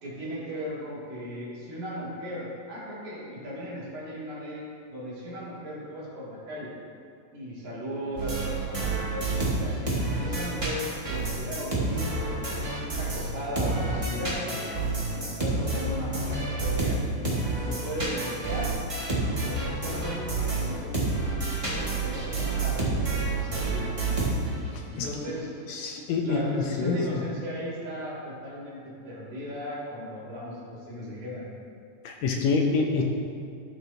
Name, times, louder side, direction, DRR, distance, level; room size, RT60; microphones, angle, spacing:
voice 1, 0.0-4.6 4.9-6.7 7.3-9.7 10.2-14.7 15.1-17.0 17.7-18.8 19.2-21.2 21.7-24.1 24.9-25.5 26.2-31.5, equal, 75° right, -8 dB, 3.6 m, -36 dB
sound 1, 8.2-13.3 13.6-24.7, right 3 dB, 35° right, 0.5 m, -29 dB
voice 2, 24.7-25.1 25.7-27.2 32.0-33.0, left 4 dB, 75° left, 2 dB, 1.7 m, -27 dB
13.0 x 6.2 x 2.7 m, 2.3 s
omnidirectional pair, 3.4 m